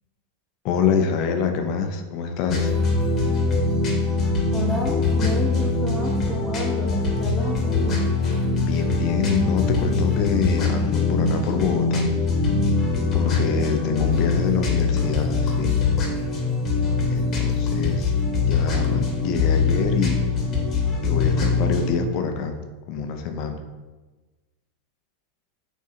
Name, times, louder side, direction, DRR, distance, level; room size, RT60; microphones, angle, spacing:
voice 1, 0.6-2.7 8.6-12.1 13.1-15.8 17.1-18.1 18.5-20.3 21.0-22.6 22.9-23.6, left 6 dB, 50° left, 6 dB, 0.6 m, -25 dB
sound 1, 2.5-21.9, left 3 dB, 35° left, 1.1 m, -22 dB
voice 2, 4.5-8.0 13.6-13.7 14.1-14.2, left 1 dB, 5° right, -2 dB, 0.9 m, -31 dB
3.7 x 2.7 x 4.3 m, 1.2 s
hypercardioid pair, 105°, 0 cm